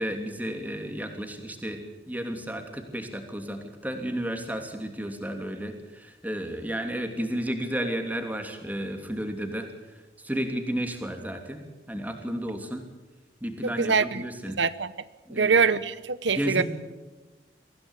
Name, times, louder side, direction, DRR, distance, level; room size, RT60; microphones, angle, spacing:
voice 1, 0.0-1.8 2.1-9.7 10.2-11.6 11.9-12.8 13.4-14.6 15.3-15.5 16.3-16.6, equal, 10° right, 3.0 m, -32 dB
voice 2, 13.6-14.2 14.6-14.9 15.3-16.6, right 5 dB, 90° right, 1.0 m, -24 dB
24.0 x 16.5 x 8.4 m
head